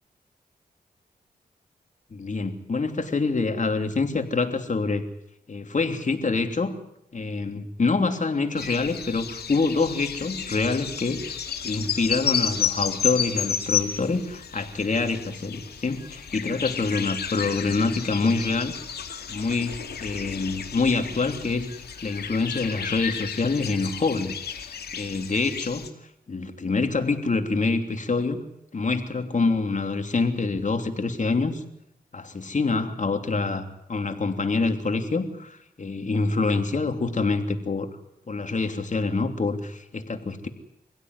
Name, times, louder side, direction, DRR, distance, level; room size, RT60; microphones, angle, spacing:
voice 1, 2.1-5.0 5.5-6.7 7.1-11.4 11.6-18.7 19.3-21.7 22.0-25.8 26.3-28.4 28.7-31.6 32.1-37.9 38.3-40.5, left 3 dB, 50° left, 6 dB, 3.1 m, -26 dB
sound 1, 8.6-25.9, left 8 dB, 80° left, 2.5 m, -32 dB
25.5 x 16.5 x 9.7 m, 0.79 s
cardioid pair, 55°, 17 cm